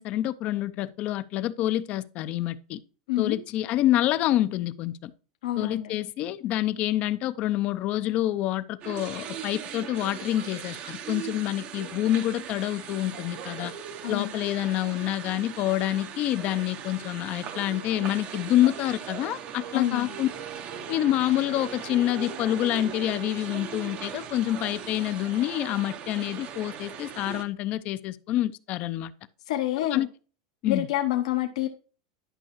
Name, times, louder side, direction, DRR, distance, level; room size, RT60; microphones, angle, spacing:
voice 1, 0.0-2.8 3.2-5.1 5.6-13.7 14.1-20.3 20.9-29.1 29.9-30.1 30.6-30.9, left 14 dB, 40° left, 0.5 m, -27 dB
voice 2, 5.4-6.0 14.0-14.4 19.7-20.2 29.5-30.0 30.7-31.7, left 13 dB, 75° left, 1.0 m, -28 dB
sound 1, 8.8-27.4, right 8 dB, 40° right, 0.8 m, -39 dB
11.0 x 5.6 x 3.0 m
supercardioid pair, 135°, 3 cm